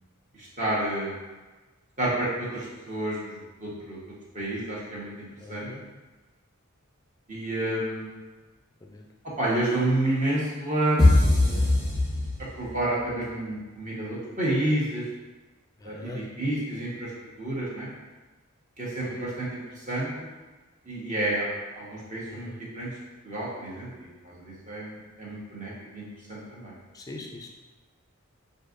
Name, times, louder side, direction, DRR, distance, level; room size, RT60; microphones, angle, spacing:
voice 1, 0.4-1.1 2.0-4.0 4.3-5.7 7.3-8.1 9.4-11.2 12.6-15.0 15.8-17.1 17.4-17.9 18.8-19.6 19.9-20.3 20.9-21.5 21.7-22.9 23.2-26.7, right 1 dB, 35° right, -7 dB, 1.2 m, -30 dB
voice 2, 5.4-5.8 8.9-9.0 11.4-11.6 15.8-16.2 19.0-19.3 22.3-22.6 26.9-27.5, left 2 dB, 15° left, 1 dB, 0.4 m, -40 dB
sound 1, 11.0-12.8, left 2 dB, 5° right, 1.1 m, -20 dB
6.3 x 2.7 x 2.5 m, 1.2 s
head